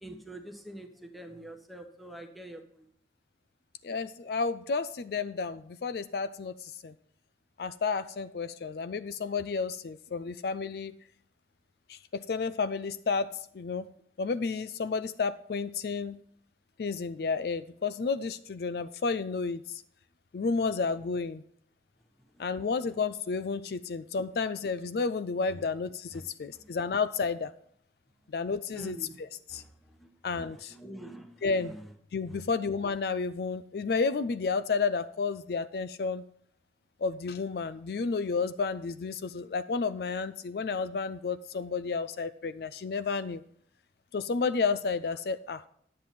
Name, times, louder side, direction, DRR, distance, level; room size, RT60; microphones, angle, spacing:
voice 1, 0.0-2.6 22.4-22.5 28.7-29.1 29.5-30.1 30.5-31.6, right 1 dB, ahead, 4 dB, 1.1 m, -45 dB
voice 2, 3.8-6.9 7.6-10.9 11.9-13.9 14.2-16.2 16.8-19.8 20.3-21.4 22.4-27.5 28.3-29.6 30.2-30.7 31.4-31.7 32.1-36.2 37.0-43.4 44.1-45.6, left 4 dB, 60° left, 13 dB, 0.4 m, -31 dB
10.5 x 7.6 x 4.2 m, 0.65 s
head